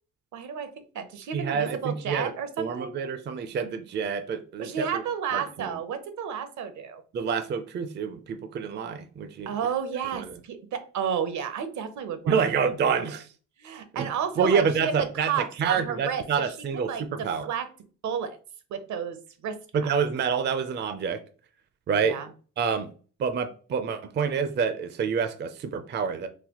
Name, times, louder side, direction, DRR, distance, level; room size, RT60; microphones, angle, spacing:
voice 1, 0.3-3.0 4.6-7.0 9.5-12.3 12.8-13.0 13.6-16.5 16.9-17.7 18.0-18.4 18.7-19.2 19.4-19.9 22.0-22.3, right 7 dB, 70° right, 9 dB, 0.7 m, -32 dB
voice 2, 1.3-2.3 2.6-5.0 5.3-5.7 7.1-9.5 10.1-10.3 12.3-13.3 13.9-14.1 14.4-17.5 19.7-21.2 21.9-22.2 22.6-22.9 23.2-26.3, right 6 dB, 35° right, 9 dB, 0.4 m, -27 dB
4.0 x 2.2 x 2.9 m, 0.38 s
cardioid pair, 90°, 30 cm